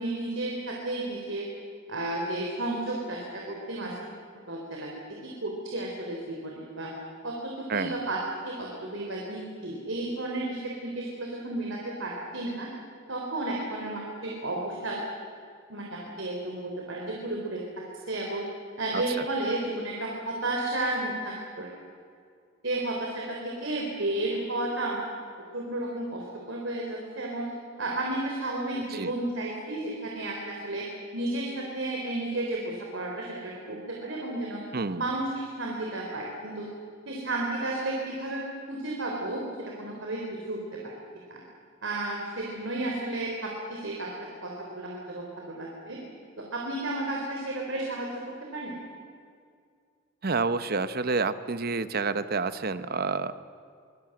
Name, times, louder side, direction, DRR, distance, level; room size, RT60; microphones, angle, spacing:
voice 1, 0.0-1.5 1.9-3.9 4.5-4.9 5.2-6.9 7.2-8.2 8.4-12.7 13.1-15.0 15.7-17.6 18.1-18.4 18.8-21.7 22.6-25.0 25.5-27.5 27.8-30.9 31.1-34.6 35.0-36.7 37.1-38.4 38.7-40.9 41.3-41.4 41.8-46.0 46.4-48.1 48.5-48.7, right 2 dB, 65° right, -1 dB, 3.6 m, -32 dB
voice 2, 18.9-19.2 28.9-29.1 34.7-35.0 50.2-53.3, right 4 dB, 50° right, 13 dB, 0.9 m, -29 dB
24.0 x 19.5 x 7.8 m, 2.2 s
head